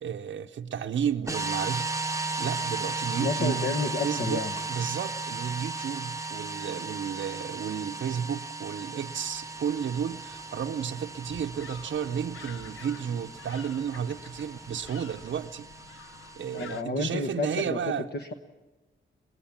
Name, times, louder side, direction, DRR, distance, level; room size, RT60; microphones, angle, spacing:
voice 1, 0.0-1.9 2.4-4.4 4.7-15.7 16.4-18.1, right 8 dB, 70° right, 0.6 m, -32 dB
sound 1, 1.3-16.8, right 3 dB, 15° right, 1.0 m, -36 dB
voice 2, 3.2-4.6 16.5-18.3, left 3 dB, 55° left, 1.2 m, -31 dB
sound 2, 8.8-15.4, left 1 dB, 20° left, 5.8 m, -54 dB
sound 3, 11.6-16.8, left 6 dB, 85° left, 0.9 m, -49 dB
22.0 x 18.0 x 7.2 m
cardioid pair, 80°, 20 cm